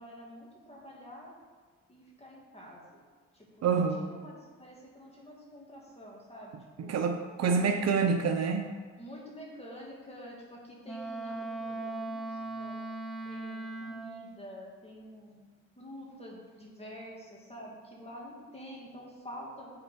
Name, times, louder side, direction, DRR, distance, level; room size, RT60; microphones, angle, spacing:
voice 1, 0.0-1.4 1.9-3.0 3.3-6.9 7.5-8.0 9.0-12.8 13.2-19.7, equal, 20° left, -2 dB, 2.2 m, -48 dB
voice 2, 3.6-4.1 6.8-8.7, right 5 dB, 60° right, 5 dB, 0.7 m, -27 dB
Wind instrument woodwind instrument, 10.8-14.3, right 2 dB, ahead, 0.6 m, -38 dB
7.9 x 4.4 x 5.7 m, 1.5 s
cardioid pair, 90°, 30 cm